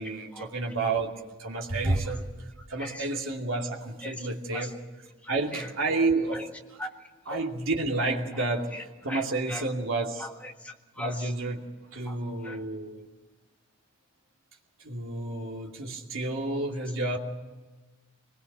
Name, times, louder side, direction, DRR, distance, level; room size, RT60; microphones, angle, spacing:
voice 1, 0.0-2.3 2.7-4.8 5.3-6.4 7.3-10.3 11.0-13.1 14.8-17.2, right 2 dB, 70° right, 0 dB, 2.6 m, -30 dB
voice 2, 5.2-5.7 6.3-6.5 6.8-6.9 7.3-7.4 8.3-8.5 8.7-9.7 10.2-11.3 12.1-12.2 12.4-12.6, left 1 dB, 5° left, 2 dB, 1.6 m, -40 dB
23.5 x 21.0 x 6.8 m, 1.2 s
head